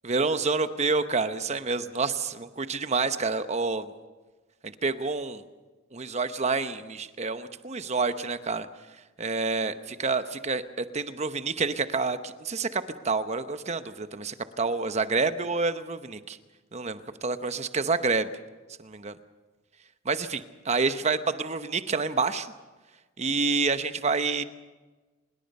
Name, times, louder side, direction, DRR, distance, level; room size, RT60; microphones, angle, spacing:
voice 1, 0.1-3.9 4.6-5.4 5.9-8.7 9.2-16.4 16.7-18.3 18.8-19.1 20.0-22.5 23.2-24.4, right 4 dB, 35° right, 11 dB, 0.9 m, -28 dB
25.0 x 21.0 x 5.5 m, 1.3 s
head